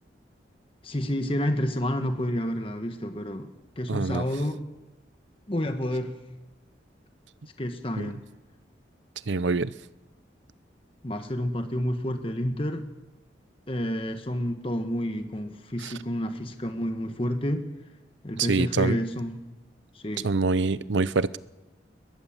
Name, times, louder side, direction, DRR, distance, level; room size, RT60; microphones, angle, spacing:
voice 1, 0.8-3.5 3.8-4.6 5.5-6.1 7.6-8.2 11.0-12.9 13.7-17.6 18.2-19.4 19.9-20.3, equal, 30° left, 7 dB, 1.3 m, -29 dB
voice 2, 3.9-4.2 8.0-8.1 9.3-9.7 18.4-19.0 20.2-21.4, right 3 dB, 80° right, 18 dB, 0.6 m, -25 dB
20.5 x 20.0 x 7.5 m, 1.1 s
head